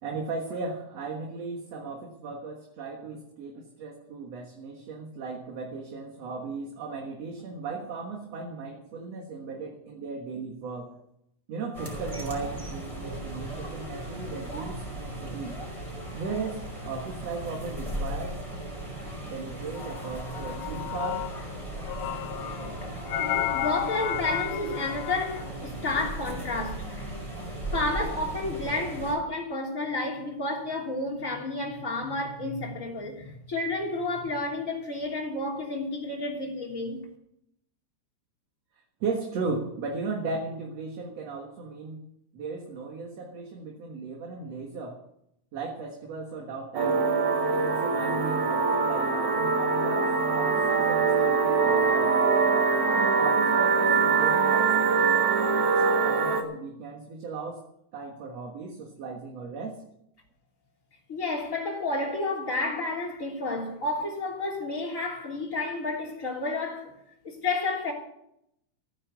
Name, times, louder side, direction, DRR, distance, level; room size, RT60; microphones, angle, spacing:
voice 1, 0.0-11.0 11.5-15.6 16.1-18.4 19.3-21.3 39.0-42.0 42.3-45.0 45.5-47.1 47.5-52.4 53.0-55.0 55.4-57.7 57.9-59.8, right 4 dB, 60° right, 2.6 m, -36 dB
sound 1, 11.7-29.2, right 1 dB, 10° right, 4.8 m, -37 dB
sound 2, 19.8-21.5 21.8-25.4, left 15 dB, 75° left, 1.7 m, -33 dB
voice 2, 23.5-26.9 27.7-37.0 61.1-66.9 67.2-67.9, left 2 dB, 25° left, 3.4 m, -31 dB
sound 3, 46.8-56.4, right 5 dB, 75° right, 2.9 m, -23 dB
15.0 x 10.0 x 7.0 m
omnidirectional pair, 3.4 m